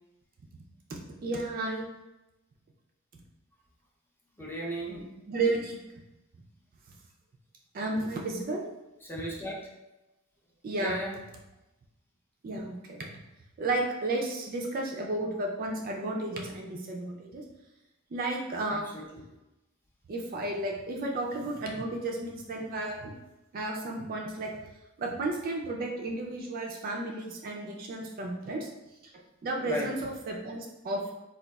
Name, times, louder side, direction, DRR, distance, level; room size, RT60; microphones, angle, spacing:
voice 1, 0.9-1.9 4.9-5.8 7.7-8.6 10.6-11.0 12.4-13.2 13.6-17.4 18.1-18.9 20.1-23.1 23.5-24.5 25.0-28.7 29.4-31.1, right 2 dB, 40° right, 0 dB, 0.4 m, -33 dB
voice 2, 4.4-5.0 9.1-9.6 10.8-11.1 18.7-19.2 29.6-29.9, equal, 10° left, -4 dB, 0.5 m, -35 dB
3.9 x 2.3 x 2.2 m, 0.98 s
head